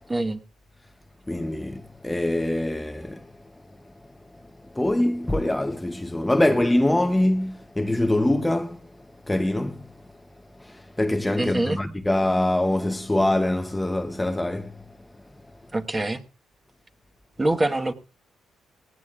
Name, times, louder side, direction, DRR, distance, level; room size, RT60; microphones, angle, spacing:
voice 1, 0.1-0.4 11.4-11.8 15.7-16.2 17.4-17.9, right 2 dB, 20° right, 1.4 m, -24 dB
voice 2, 1.3-3.3 4.7-8.8 9.3-9.9 10.6-14.8, left 1 dB, 10° left, 0.8 m, -24 dB
18.5 x 17.0 x 2.4 m
cardioid pair, 90°, 0 cm